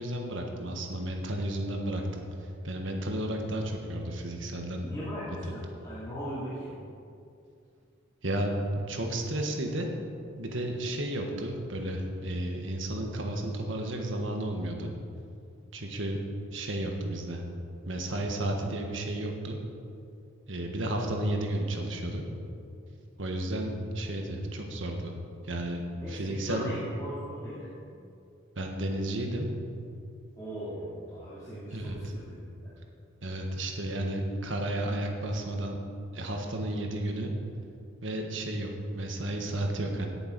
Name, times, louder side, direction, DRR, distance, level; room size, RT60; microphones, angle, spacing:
voice 1, 0.0-2.2 2.6-4.9 8.2-9.9 10.4-14.9 15.7-16.2 16.5-17.4 17.9-19.6 20.5-22.2 23.2-25.1 25.4-26.7 28.6-29.5 31.7-32.0 33.2-35.8 36.1-37.3 38.0-40.1, right 1 dB, 60° right, 2 dB, 1.5 m, -32 dB
voice 2, 4.8-6.7 26.0-27.7 30.4-32.7, equal, 15° left, -11 dB, 2.4 m, -39 dB
17.0 x 7.0 x 5.3 m, 2.5 s
head